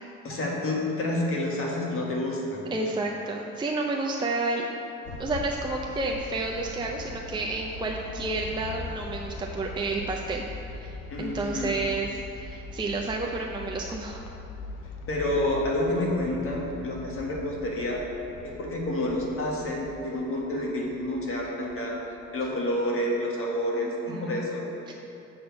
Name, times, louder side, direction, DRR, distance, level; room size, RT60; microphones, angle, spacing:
voice 1, 0.2-2.7 11.1-11.7 15.1-18.0 18.4-22.0 22.3-24.6, left 1 dB, 45° left, -3 dB, 1.7 m, -29 dB
voice 2, 2.7-4.7 5.2-14.2 23.8-24.5 24.9-25.0, right 2 dB, 15° right, -1 dB, 0.5 m, -31 dB
sound 1, 5.0-22.5, left 3 dB, 85° left, 0.7 m, -41 dB
7.5 x 4.3 x 5.7 m, 2.9 s
cardioid pair, 90°, 30 cm